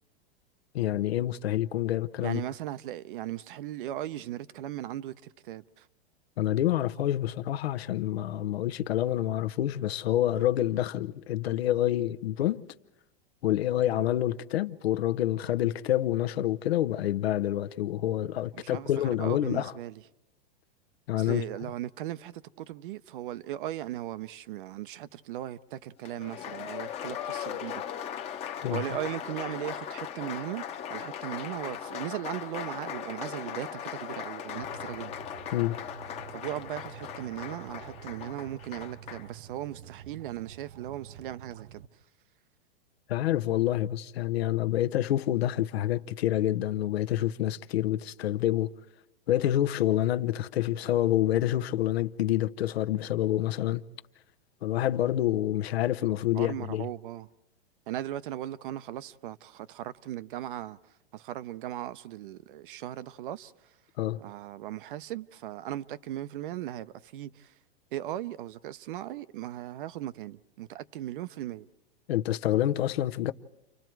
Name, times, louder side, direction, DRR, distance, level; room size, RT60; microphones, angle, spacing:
voice 1, 0.7-2.4 6.4-12.6 13.4-19.7 21.1-21.4 28.6-28.8 35.5-35.8 43.1-48.7 49.3-53.8 54.6-56.9 64.0-64.2 72.1-73.3, left 13 dB, 80° left, 0.8 m, -27 dB
voice 2, 2.2-5.9 18.5-20.0 21.1-27.8 28.7-30.6 30.9-35.1 36.3-41.8 56.3-57.3 57.9-60.8 61.1-63.7 64.2-67.5 67.9-71.7, right 13 dB, 60° right, 0.7 m, -38 dB
Applause, 26.0-39.3, left 9 dB, 20° left, 0.9 m, -38 dB
sound 1, 27.5-41.9, right 10 dB, 80° right, 0.9 m, -51 dB
30.0 x 25.0 x 4.6 m
supercardioid pair, 155°, 30 cm